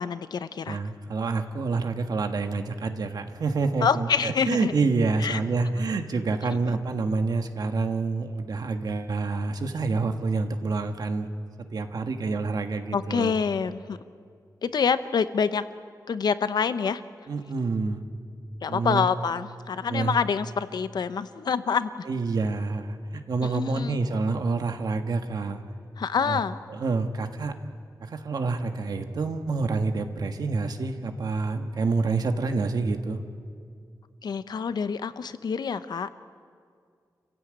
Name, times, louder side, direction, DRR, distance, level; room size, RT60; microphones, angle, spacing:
voice 1, 0.0-0.8 3.8-4.7 5.2-5.4 6.5-6.8 12.9-14.0 14.6-15.6 16.1-17.0 18.6-22.1 23.4-24.0 26.0-26.6 34.2-36.1, left 6 dB, 75° left, 12 dB, 0.8 m, -27 dB
voice 2, 0.7-11.3 11.7-13.3 17.3-18.0 18.7-19.1 19.9-20.2 22.1-25.6 26.2-26.4 26.7-27.6 28.0-33.2, right 3 dB, 70° right, 6 dB, 1.5 m, -27 dB
28.5 x 15.5 x 8.9 m, 2.2 s
wide cardioid pair, 165°, 7 cm